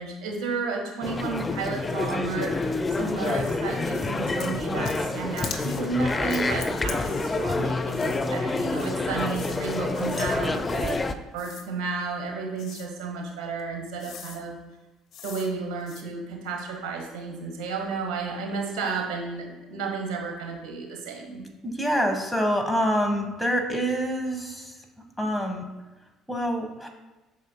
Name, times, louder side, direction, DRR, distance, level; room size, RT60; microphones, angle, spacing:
voice 1, 0.0-11.0 11.3-14.6 15.2-21.4, right 4 dB, 60° right, 1 dB, 1.3 m, -32 dB
sound 1, 1.0-11.1, left 3 dB, 25° left, 0.5 m, -28 dB
sound 2, 3.2-3.5 3.9-4.1 4.4-5.1 5.4-5.8 6.3-7.6 7.9-8.2 8.6-8.9 9.3-9.6 9.9-10.3 10.7-11.0 11.4-11.7 12.6-12.9 13.6-13.7 14.0-14.4 15.1-15.5 15.8-16.0, left 6 dB, 55° left, 0.8 m, -42 dB
voice 2, 21.6-24.8 25.2-25.6 26.3-26.9, equal, 5° left, 2 dB, 1.2 m, -26 dB
8.3 x 6.1 x 2.2 m, 1.2 s
figure-of-eight pair, 55°, 0 cm